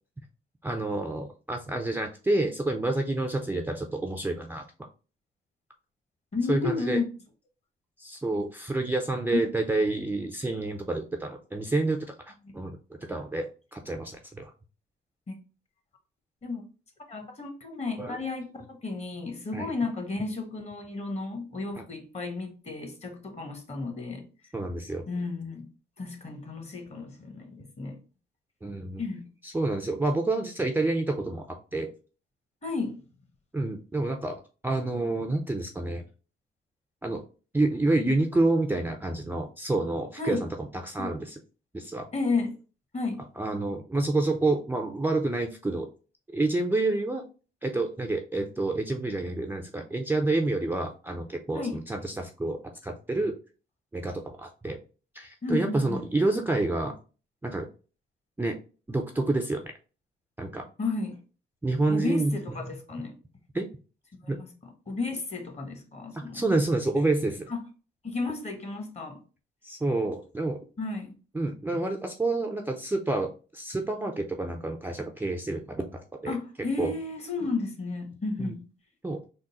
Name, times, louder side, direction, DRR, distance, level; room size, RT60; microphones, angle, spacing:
voice 1, 0.6-4.6 6.5-7.0 8.0-12.8 13.1-13.5 13.7-14.5 18.0-18.2 19.5-19.7 24.5-25.0 28.6-29.0 29.4-31.9 33.5-36.0 37.0-37.2 37.5-40.5 40.8-41.4 41.7-42.1 43.4-45.9 46.3-47.2 47.6-53.3 53.9-54.8 55.1-56.9 57.4-57.7 58.4-58.6 58.9-59.6 60.4-60.6 61.6-62.4 63.5-63.7 64.3-64.4 66.1-67.5 69.6-70.6 71.3-76.4 76.8-76.9 78.4-78.5 79.0-79.2, right 2 dB, 10° right, 0.4 m, -28 dB
voice 2, 6.3-7.1 9.3-9.4 15.3-15.4 16.4-16.6 17.1-24.2 25.1-25.7 26.0-28.0 29.0-29.3 32.6-33.0 40.2-40.4 41.0-41.1 42.1-42.6 42.9-43.3 51.5-51.8 55.4-56.1 60.8-61.2 61.9-63.1 64.2-66.4 66.9-67.0 67.5-67.7 68.0-69.2 70.8-71.1 76.3-78.6, left 3 dB, 35° left, 1.1 m, -33 dB
3.7 x 2.0 x 4.0 m
cardioid pair, 90°, 20 cm